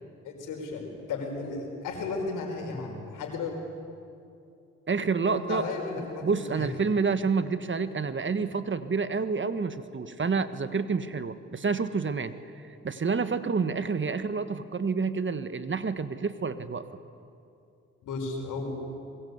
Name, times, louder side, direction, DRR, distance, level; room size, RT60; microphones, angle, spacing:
voice 1, 0.2-3.5 5.3-6.7 18.0-18.8, left 3 dB, 85° left, 3 dB, 4.8 m, -34 dB
voice 2, 4.9-5.6 6.2-16.8, right 5 dB, 40° right, 11 dB, 1.5 m, -29 dB
25.0 x 22.0 x 8.2 m, 2.6 s
supercardioid pair, 60°, 31 cm